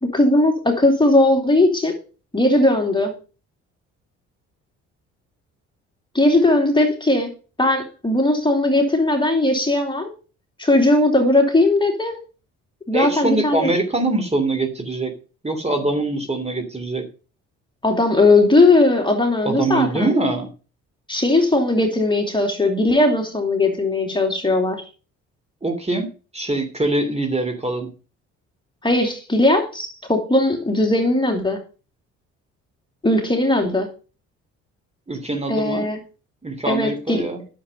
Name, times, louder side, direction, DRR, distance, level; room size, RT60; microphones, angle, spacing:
voice 1, 0.0-2.0 2.3-3.1 6.1-7.3 7.6-10.1 10.6-12.2 12.9-13.7 17.8-20.1 21.1-24.8 28.8-31.6 33.0-33.9 35.5-36.0 36.7-37.2, left 2 dB, 15° left, 2 dB, 2.9 m, -18 dB
voice 2, 12.9-15.1 15.4-17.0 19.4-20.5 25.6-27.9 35.1-35.8 36.4-37.4, right 2 dB, 20° right, 6 dB, 2.9 m, -23 dB
10.0 x 7.4 x 5.5 m, 0.36 s
hypercardioid pair, 55°, 35 cm